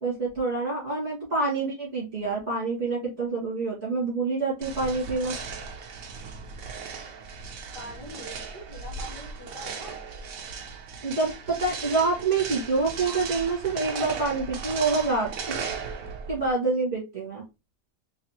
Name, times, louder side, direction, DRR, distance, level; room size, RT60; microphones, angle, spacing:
voice 1, 0.0-5.4 11.0-15.3 16.3-17.4, right 3 dB, 40° right, -6 dB, 2.1 m, -27 dB
voice 2, 1.4-1.7 7.7-9.9, equal, 20° right, -6 dB, 1.4 m, -43 dB
sound 1, 4.6-16.5, right 5 dB, 65° right, 1.1 m, -37 dB
4.0 x 3.2 x 2.9 m, 0.25 s
omnidirectional pair, 1.7 m